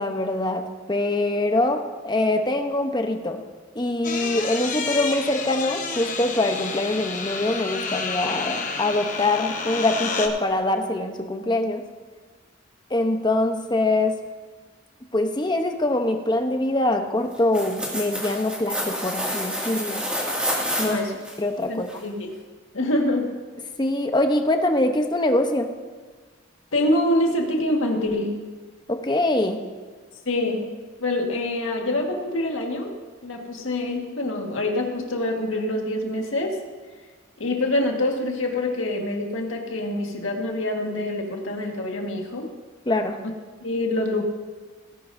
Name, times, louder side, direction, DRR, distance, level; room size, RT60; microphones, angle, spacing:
voice 1, 0.0-3.4 3.7-11.8 12.9-14.2 15.1-20.0 20.8-21.0 21.4-21.9 23.8-25.7 28.9-29.6 42.9-43.2, left 2 dB, 20° left, 5 dB, 0.8 m, -24 dB
sound 1, 4.0-10.3, left 5 dB, 40° left, 1.1 m, -30 dB
sound 2, 17.3-21.4 21.9-22.0, equal, 5° right, 2.2 m, -28 dB
voice 2, 21.7-22.3 22.7-23.4 26.7-28.4 30.2-33.0 33.2-36.6 37.4-42.5 43.6-44.2, left 1 dB, 85° left, 1 dB, 1.7 m, -25 dB
18.0 x 11.0 x 2.7 m, 1.4 s
head